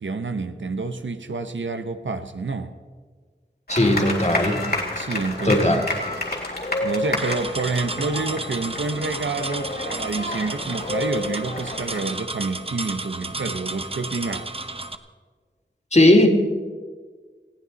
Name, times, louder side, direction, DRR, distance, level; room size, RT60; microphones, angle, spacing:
voice 1, 0.0-2.7 5.0-5.6 6.8-14.5, right 3 dB, 85° right, 8 dB, 0.8 m, -28 dB
sound 1, 3.7-12.0, left 2 dB, 55° left, 3.3 m, -30 dB
voice 2, 3.7-4.6 5.4-5.8 15.9-16.3, left 1 dB, 35° left, 3 dB, 2.5 m, -17 dB
sound 2, 7.2-15.0, right 2 dB, 30° right, 0.9 m, -33 dB
20.5 x 15.0 x 4.1 m, 1.5 s
wide cardioid pair, 40°, 19 cm